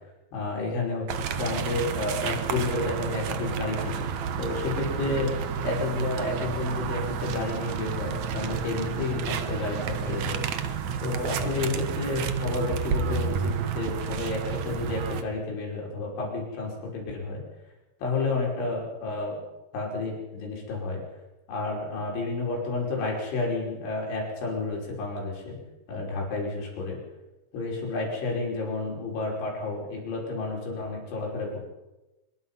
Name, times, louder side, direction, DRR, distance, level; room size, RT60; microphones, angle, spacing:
voice 1, 0.3-4.1 4.4-5.3 5.6-10.5 11.0-17.4 18.0-19.4 19.7-21.0 21.5-25.6 25.9-27.0 27.5-31.5, left 3 dB, 85° left, -2 dB, 7.8 m, -31 dB
sound 1, 1.1-15.2, right 7 dB, 80° right, 1.6 m, -31 dB
25.0 x 22.5 x 5.6 m, 1.0 s
omnidirectional pair, 5.3 m